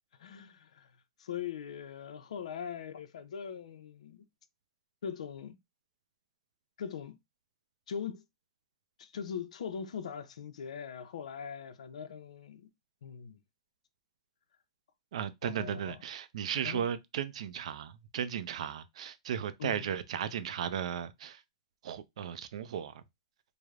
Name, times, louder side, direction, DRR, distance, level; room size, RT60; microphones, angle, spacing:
voice 1, 0.2-0.9 1.2-4.2 5.0-5.6 6.8-7.2 7.9-8.2 9.0-12.7 13.0-13.4 15.4-16.0 16.6-16.8 19.6-19.9, left 7 dB, 90° left, 0.4 m, -41 dB
voice 2, 15.1-21.4 21.8-23.0, right 9 dB, 75° right, 0.4 m, -36 dB
3.2 x 2.0 x 2.3 m
supercardioid pair, 155°, 3 cm